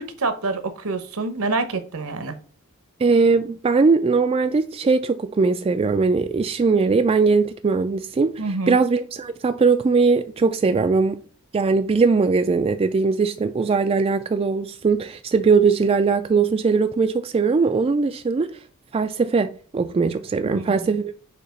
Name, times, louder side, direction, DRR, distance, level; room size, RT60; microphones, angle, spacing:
voice 1, 0.0-2.4 8.4-8.8 20.5-20.7, right 3 dB, 70° right, 0.9 m, -27 dB
voice 2, 3.0-8.3 8.7-11.2 11.5-18.5 18.9-21.1, right 4 dB, 25° right, 0.3 m, -20 dB
6.7 x 2.9 x 5.1 m
head